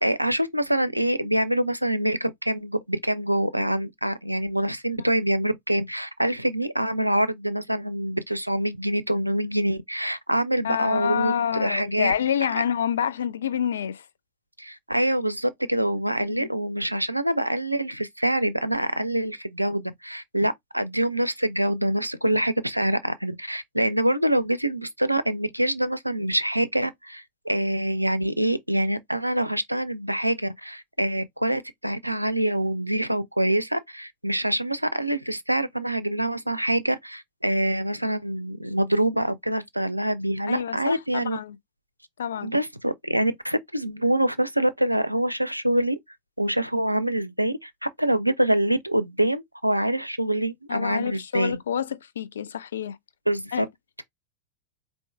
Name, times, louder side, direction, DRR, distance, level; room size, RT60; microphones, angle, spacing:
voice 1, 0.0-12.1 14.6-41.4 42.4-46.0 46.4-51.6 53.3-53.7, right 1 dB, 90° right, 0.5 m, -25 dB
voice 2, 10.6-14.0 16.3-16.5 40.5-41.6 42.2-42.5 50.7-53.0 53.5-53.7, left 8 dB, 65° left, 0.5 m, -28 dB
4.5 x 2.7 x 3.3 m
figure-of-eight pair, 90°, 0 cm